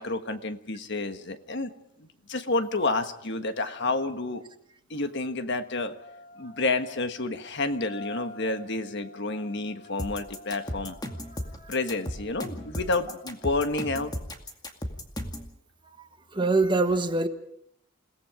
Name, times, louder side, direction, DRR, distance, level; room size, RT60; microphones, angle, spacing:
voice 1, 0.0-1.7 2.0-4.4 4.9-5.9 6.4-11.0 11.7-14.1, left 3 dB, 55° left, 9 dB, 1.5 m, -30 dB
sound 1, 2.8-3.0 5.9-13.4, left 2 dB, 40° left, 5.1 m, -48 dB
sound 2, 10.0-15.5, left 1 dB, 20° left, 2.2 m, -35 dB
voice 2, 16.3-17.3, right 3 dB, 20° right, 7 dB, 1.4 m, -23 dB
29.0 x 18.5 x 5.1 m, 0.72 s
head